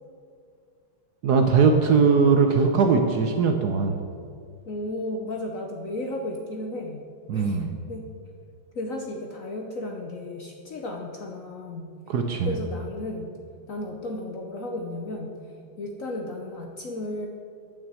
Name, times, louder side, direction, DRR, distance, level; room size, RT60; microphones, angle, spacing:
voice 1, 1.2-4.0 7.3-7.7 12.1-12.6, right 5 dB, 65° right, 5 dB, 1.1 m, -20 dB
voice 2, 4.7-7.0 7.3-8.0 8.7-11.9 12.4-13.3 13.7-15.4 15.8-17.3, left 1 dB, 55° left, 2 dB, 0.9 m, -34 dB
9.3 x 6.1 x 8.2 m, 2.3 s
omnidirectional pair, 2.3 m